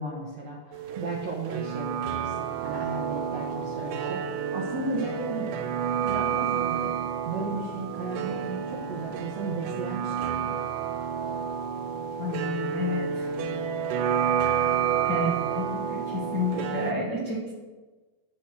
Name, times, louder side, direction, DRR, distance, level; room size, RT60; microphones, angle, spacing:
voice 1, 0.0-5.6 5.8-7.0 7.2-10.6 15.1-15.5, right 3 dB, 70° right, -2 dB, 1.6 m, -35 dB
sound 1, 0.7-16.9, right 8 dB, 85° right, 1.9 m, -30 dB
voice 2, 12.2-13.3 15.1-17.5, left 3 dB, 60° left, -5 dB, 1.0 m, -31 dB
13.0 x 4.8 x 6.4 m, 1.3 s
omnidirectional pair, 4.4 m